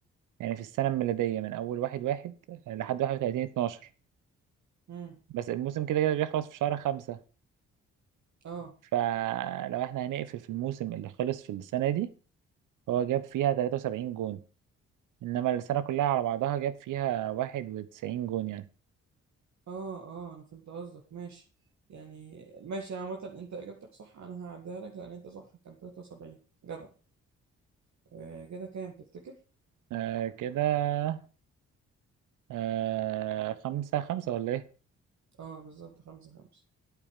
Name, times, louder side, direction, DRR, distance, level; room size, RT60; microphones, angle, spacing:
voice 1, 0.4-3.8 5.3-7.2 8.9-12.1 12.9-14.4 15.2-18.6 29.9-31.2 32.5-34.6, right 12 dB, 80° right, 1.0 m, -30 dB
voice 2, 4.9-5.2 8.4-8.7 19.7-21.4 21.9-26.4 26.6-26.9 28.1-29.4 35.4-36.6, right 5 dB, 65° right, 2.0 m, -42 dB
8.4 x 8.3 x 6.7 m
supercardioid pair, 50°, 31 cm